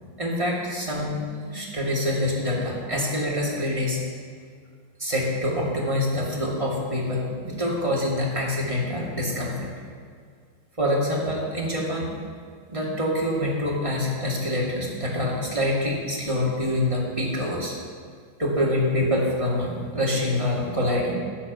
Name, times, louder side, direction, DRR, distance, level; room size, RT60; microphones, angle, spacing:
voice 1, 0.2-1.1 1.4-4.0 5.0-9.7 10.8-12.1 12.7-17.7 18.4-21.1, left 1 dB, 15° right, -4 dB, 2.3 m, -25 dB
11.5 x 8.4 x 6.9 m, 2.1 s
omnidirectional pair, 2.2 m